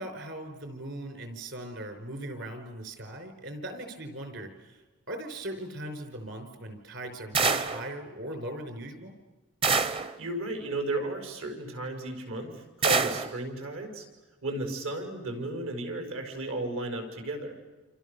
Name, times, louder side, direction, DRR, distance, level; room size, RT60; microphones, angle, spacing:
voice 1, 0.0-4.8 5.1-9.2, right 1 dB, 55° right, 7 dB, 5.1 m, -39 dB
sound 1, 7.3-7.9 9.6-10.1 12.8-13.3, right 4 dB, 25° right, 0.8 m, -25 dB
voice 2, 10.0-14.0 14.4-17.6, right 2 dB, 75° right, 4 dB, 6.4 m, -34 dB
28.5 x 28.5 x 7.0 m, 1.2 s
head